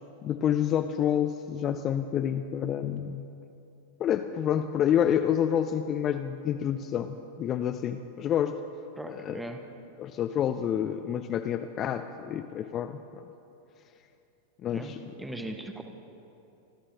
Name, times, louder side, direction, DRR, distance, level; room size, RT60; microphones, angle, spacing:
voice 1, 0.2-3.3 4.0-8.6 9.1-9.4 10.0-13.0 14.6-15.0, left 9 dB, 30° left, 7 dB, 0.4 m, -28 dB
voice 2, 9.0-9.6 14.7-15.8, right 1 dB, 5° right, 5 dB, 1.1 m, -39 dB
26.0 x 12.5 x 2.8 m, 2.8 s
figure-of-eight pair, 90°, 0 cm